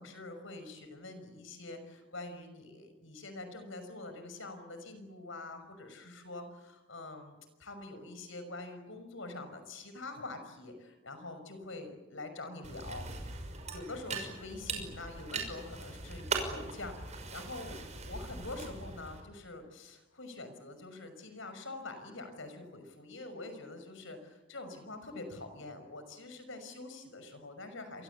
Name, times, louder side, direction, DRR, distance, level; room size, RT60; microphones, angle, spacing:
voice 1, 0.0-13.0 13.7-28.0, left 2 dB, 70° left, 8 dB, 5.9 m, -45 dB
sound 1, 12.6-19.2, right 4 dB, 35° right, 5.9 m, -40 dB
29.5 x 23.5 x 8.4 m, 1.0 s
head